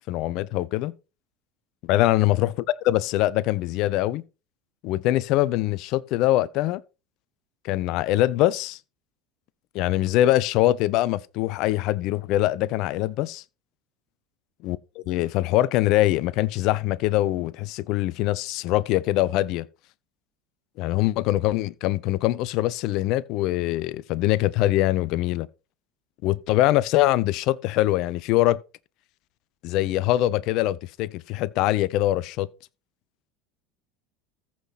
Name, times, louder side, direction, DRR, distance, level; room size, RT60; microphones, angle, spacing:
voice 1, 0.1-0.9 1.8-2.5 2.8-4.2 4.8-6.8 7.6-8.8 9.7-13.4 14.6-19.7 20.8-25.5 26.2-28.6 29.6-32.5, left 15 dB, 55° left, 0.6 m, -23 dB
14.5 x 5.9 x 4.2 m
figure-of-eight pair, 75°, 0 cm